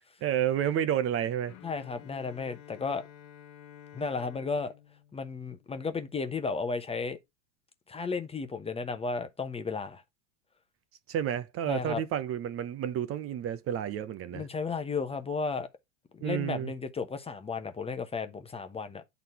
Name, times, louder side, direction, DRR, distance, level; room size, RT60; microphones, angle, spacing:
voice 1, 0.2-1.5 11.1-14.5 16.2-16.7, right 10 dB, 35° right, 0.8 m, -30 dB
Bowed string instrument, 1.5-6.3, left 10 dB, 45° left, 1.2 m, -52 dB
voice 2, 1.6-3.0 3.9-4.7 5.1-7.2 7.9-10.0 11.7-12.0 14.3-15.7 16.1-19.0, left 4 dB, 15° left, 0.9 m, -34 dB
9.1 x 4.1 x 4.2 m
hypercardioid pair, 90°, 39 cm